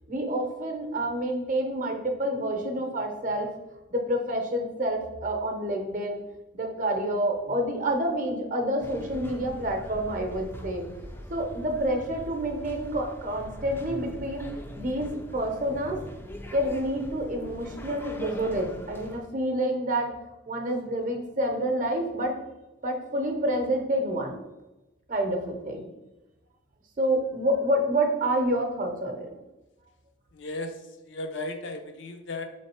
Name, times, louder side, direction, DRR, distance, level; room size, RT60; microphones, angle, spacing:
voice 1, 0.1-3.5 3.9-6.2 6.5-10.9 11.3-15.1 15.3-16.0 16.5-20.1 20.5-22.4 22.8-24.4 25.1-25.9 27.0-29.3, right 1 dB, 40° right, 3 dB, 0.7 m, -28 dB
sound 1, 8.8-19.2, left 1 dB, 10° left, 0.3 m, -42 dB
voice 2, 30.4-30.7 31.1-32.4, left 2 dB, 70° left, 6 dB, 0.5 m, -35 dB
3.8 x 3.2 x 4.3 m, 1.0 s
head